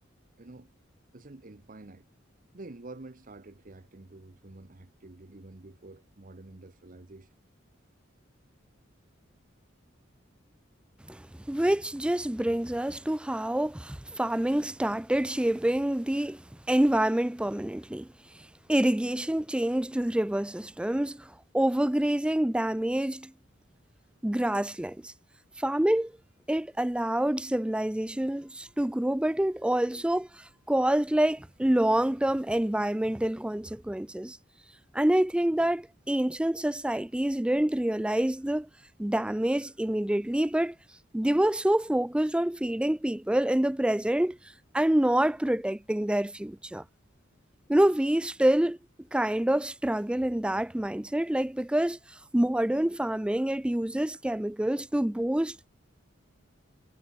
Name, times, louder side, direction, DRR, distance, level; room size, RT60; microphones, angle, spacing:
voice 1, 0.4-0.7 1.1-2.1 2.5-7.3, right 2 dB, 45° right, 1.0 m, -48 dB
voice 2, 11.1-18.1 18.7-23.3 24.2-25.1 25.6-26.1 26.5-34.4 34.9-38.7 39.0-40.8 41.1-44.4 44.7-46.8 47.7-48.8 49.1-52.0 52.3-55.7, right 1 dB, 5° right, 0.4 m, -27 dB
head